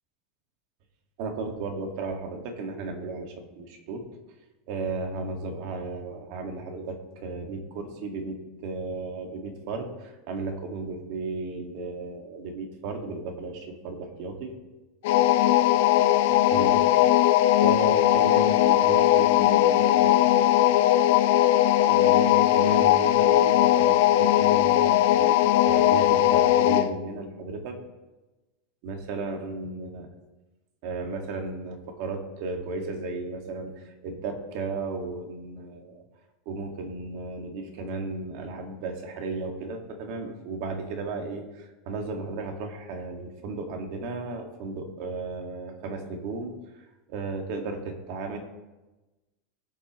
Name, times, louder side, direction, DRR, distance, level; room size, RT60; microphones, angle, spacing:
voice 1, 1.2-4.0 4.7-14.6 16.5-16.8 17.6-20.5 21.9-27.8 28.8-30.1 30.8-36.0 36.5-46.8 47.1-48.4, right 3 dB, 50° right, 3 dB, 1.9 m, -34 dB
sound 1, 15.0-26.9, left 13 dB, 65° left, 0.6 m, -19 dB
20.0 x 7.5 x 3.1 m, 1.1 s
supercardioid pair, 170°, 0 cm